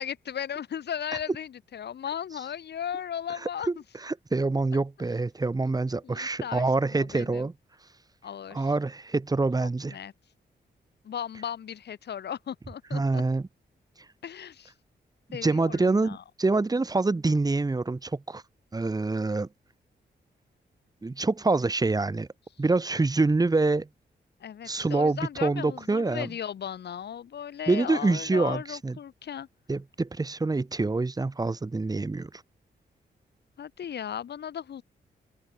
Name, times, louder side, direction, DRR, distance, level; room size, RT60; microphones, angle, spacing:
voice 1, 0.0-3.7 5.6-5.7 6.0-7.5 8.2-8.7 9.6-10.1 11.0-13.2 14.2-14.7 15.3-16.2 24.4-29.5 33.6-34.8, left 9 dB, 75° left, 4.5 m, -36 dB
voice 2, 4.0-7.5 8.5-10.0 12.9-13.5 15.4-18.4 18.7-19.5 21.0-22.3 22.6-23.9 24.7-26.3 27.7-29.0 29.7-32.3, right 3 dB, 20° right, 2.1 m, -26 dB
wide cardioid pair, 120°, 17 cm